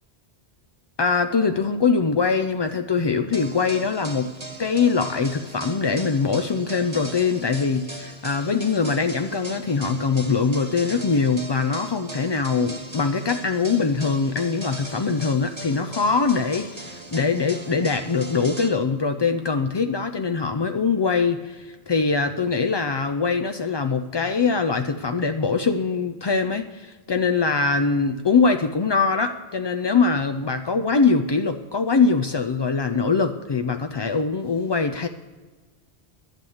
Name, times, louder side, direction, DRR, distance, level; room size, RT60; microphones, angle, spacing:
voice 1, 1.0-4.3 4.6-35.1, left 4 dB, 45° left, 7 dB, 0.3 m, -22 dB
sound 1, 3.3-18.7, right 1 dB, 25° right, 1.3 m, -39 dB
11.5 x 7.2 x 7.8 m, 1.3 s
omnidirectional pair, 1.1 m